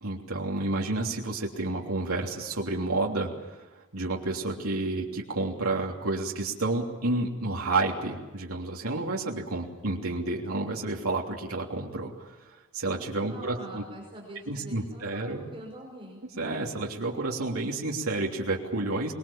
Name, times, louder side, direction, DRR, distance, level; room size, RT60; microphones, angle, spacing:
voice 1, 0.0-3.6 3.9-12.3 12.7-13.8 14.5-15.5 16.4-19.1, right 2 dB, 85° right, -1 dB, 3.2 m, -30 dB
voice 2, 13.2-16.2, right 1 dB, 25° right, 0 dB, 5.3 m, -44 dB
25.0 x 21.0 x 7.4 m, 1.2 s
head